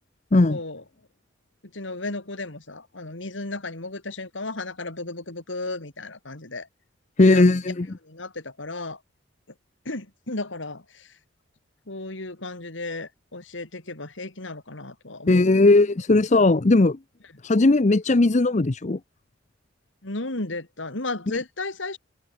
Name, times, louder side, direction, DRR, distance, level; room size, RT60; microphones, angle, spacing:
voice 1, 0.5-0.8 1.7-6.7 7.3-7.7 8.0-9.0 9.8-11.1 11.9-15.5 20.0-22.0, left 2 dB, 75° left, 3.0 m, -34 dB
voice 2, 7.2-7.9 15.3-17.0 17.4-19.0, left 2 dB, 40° left, 0.7 m, -18 dB
head